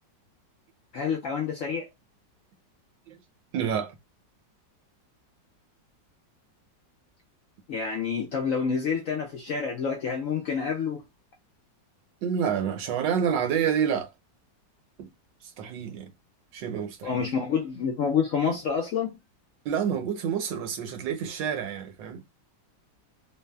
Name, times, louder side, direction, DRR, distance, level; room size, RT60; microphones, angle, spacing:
voice 1, 0.9-1.9 7.7-11.0 17.0-19.1, left 6 dB, 70° left, 0.8 m, -28 dB
voice 2, 3.5-4.0 12.2-14.1 15.0-15.1 15.6-16.1 16.5-17.3 19.6-22.2, right 8 dB, 80° right, 1.3 m, -28 dB
3.2 x 2.0 x 2.2 m
omnidirectional pair, 2.0 m